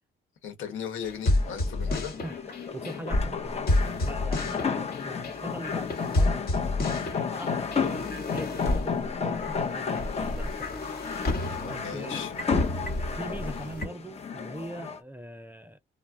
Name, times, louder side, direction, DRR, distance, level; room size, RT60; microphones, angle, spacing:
voice 1, 0.4-2.1 11.6-12.5, left 8 dB, 80° left, 1.0 m, -37 dB
sound 1, 1.0-13.9, left 1 dB, 50° left, 1.2 m, -30 dB
sound 2, 1.3-15.0, left 6 dB, 30° left, 0.7 m, -33 dB
voice 2, 1.8-3.7 4.0-6.5 7.3-10.9 11.7-12.2 13.1-15.8, right 1 dB, 10° right, 0.4 m, -42 dB
2.2 x 2.0 x 3.6 m
cardioid pair, 90°, 20 cm